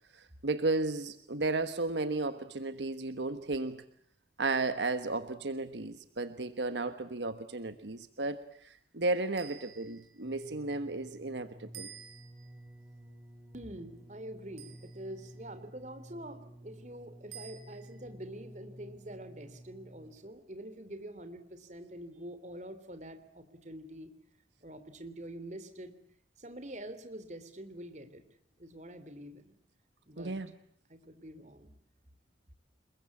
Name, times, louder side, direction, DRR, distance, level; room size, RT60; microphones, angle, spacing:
voice 1, 0.1-3.8 4.4-11.9 30.2-30.5, right 3 dB, 80° right, 10 dB, 1.3 m, -34 dB
sound 1, 9.3-10.2 11.7-12.6 14.6-15.3 17.3-18.0, right 9 dB, 65° right, 5.4 m, -51 dB
sound 2, 10.2-20.4 21.2-21.3, right 1 dB, 10° right, 4.5 m, -52 dB
voice 2, 13.5-24.1 24.6-25.9 26.4-28.2 28.6-29.5 30.1-30.3 30.9-31.7, right 1 dB, 40° right, 9 dB, 3.3 m, -46 dB
29.0 x 21.5 x 8.5 m, 0.65 s
head